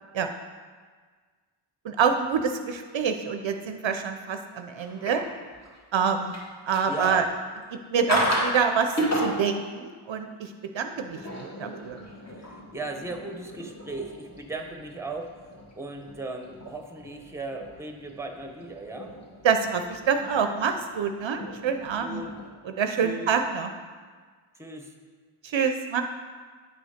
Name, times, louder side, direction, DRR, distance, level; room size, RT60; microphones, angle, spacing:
voice 1, 1.8-5.2 5.9-6.3 6.7-7.2 7.7-12.0 19.4-22.2 22.8-23.7 25.4-26.0, right 6 dB, 65° right, 7 dB, 0.6 m, -26 dB
sound 1, 4.8-5.8 6.2-7.4 8.1-8.6 9.0-9.6 10.9-22.5, equal, 30° left, 2.0 m, -34 dB
voice 2, 6.9-7.2 12.3-19.2 22.0-22.3 23.0-23.3 24.5-25.0, right 2 dB, 5° right, 4 dB, 1.0 m, -37 dB
9.3 x 4.0 x 5.0 m, 1.5 s
cardioid pair, 60°, 50 cm